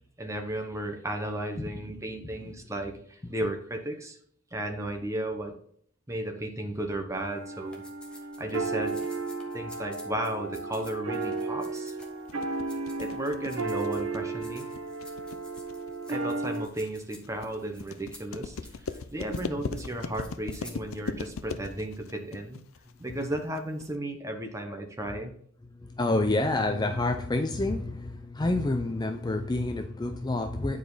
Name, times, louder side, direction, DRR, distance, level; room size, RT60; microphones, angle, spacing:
voice 1, 0.2-4.2 4.5-5.6 6.1-7.8 8.4-9.0 9.5-12.0 13.0-14.7 16.1-22.6 23.0-25.3, right 1 dB, 15° right, 4 dB, 1.0 m, -34 dB
voice 2, 1.6-2.5 19.6-20.1 23.1-23.2 25.1-25.2 25.6-30.8, left 2 dB, 20° left, 6 dB, 0.5 m, -29 dB
sound 1, 7.1-16.7, right 3 dB, 90° right, 1.2 m, -34 dB
sound 2, 7.7-12.4 12.7-14.1 14.4-21.0, left 1 dB, 5° left, 1.3 m, -52 dB
sound 3, 12.0-24.0, left 4 dB, 90° left, 0.6 m, -39 dB
9.2 x 5.0 x 4.0 m, 0.63 s
head